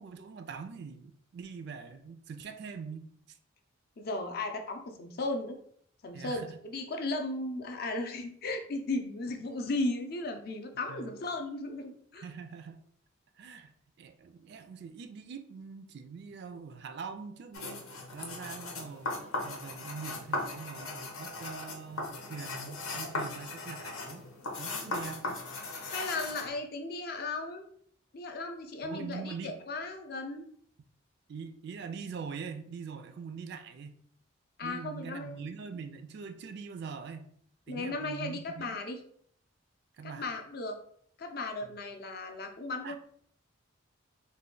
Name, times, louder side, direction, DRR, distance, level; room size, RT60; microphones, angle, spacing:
voice 1, 0.0-3.4 6.1-6.6 10.9-11.1 12.2-12.8 13.4-24.3 24.6-25.4 28.8-29.6 31.3-34.0 34.6-37.3 37.7-38.8 40.0-40.3 42.8-43.0, right 5 dB, 55° right, 9 dB, 0.3 m, -43 dB
voice 2, 4.0-5.6 6.0-12.2 24.8-24.9 25.9-27.6 28.1-30.5 34.6-35.5 37.7-39.0 40.0-40.8 41.2-43.0, left 2 dB, 45° left, 4 dB, 0.5 m, -36 dB
sound 1, 17.5-26.5, left 2 dB, 85° left, 0.8 m, -38 dB
3.2 x 2.2 x 3.7 m, 0.63 s
head